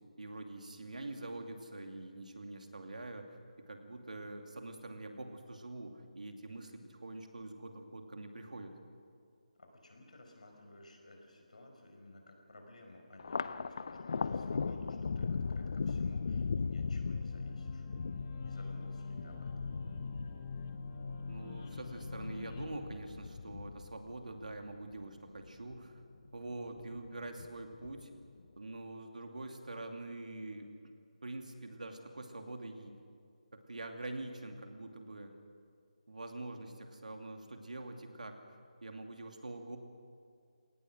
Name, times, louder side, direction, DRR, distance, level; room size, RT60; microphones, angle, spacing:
voice 1, 0.2-3.3 3.7-8.7 21.3-26.0 26.3-28.1 28.6-30.7 31.2-32.9 33.5-35.3 36.1-38.4 38.8-39.8, right 2 dB, 90° right, 4 dB, 2.6 m, -45 dB
voice 2, 9.6-17.9 18.4-19.7, left 1 dB, 70° left, 3 dB, 5.2 m, -55 dB
Thunder, 13.2-25.9 26.2-27.1 27.4-28.2, left 5 dB, 40° left, 0.5 m, -39 dB
sound 1, 16.8-22.8, left 4 dB, 20° left, 1.0 m, -43 dB
23.0 x 18.5 x 6.2 m, 2.3 s
figure-of-eight pair, 170°, 4 cm